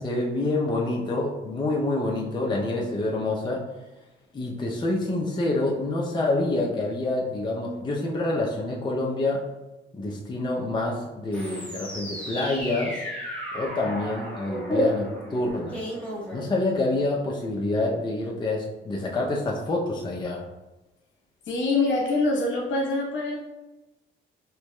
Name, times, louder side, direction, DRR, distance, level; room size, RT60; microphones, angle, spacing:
voice 1, 0.0-3.6 4.3-9.4 9.9-13.0 13.5-15.8 16.3-20.4, left 2 dB, 20° left, -2 dB, 0.6 m, -27 dB
sound 1, 11.3-17.0, equal, 5° left, 1.1 m, -32 dB
voice 2, 21.5-23.4, left 2 dB, 70° left, -2 dB, 1.1 m, -24 dB
4.5 x 3.0 x 2.2 m, 1.0 s
cardioid pair, 90°, 20 cm